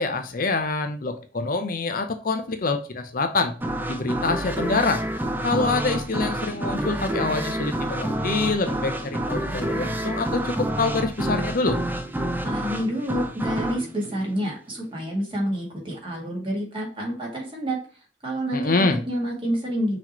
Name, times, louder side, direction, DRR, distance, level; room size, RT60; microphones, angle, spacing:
voice 1, 0.0-3.5 3.9-5.0 5.4-11.8 18.5-19.0, left 3 dB, 50° left, 7 dB, 0.6 m, -25 dB
sound 1, 3.6-15.1, right 1 dB, 10° right, 0.4 m, -28 dB
voice 2, 12.4-17.8 18.2-20.0, equal, 30° right, -1 dB, 1.8 m, -28 dB
5.8 x 3.0 x 2.9 m, 0.39 s
head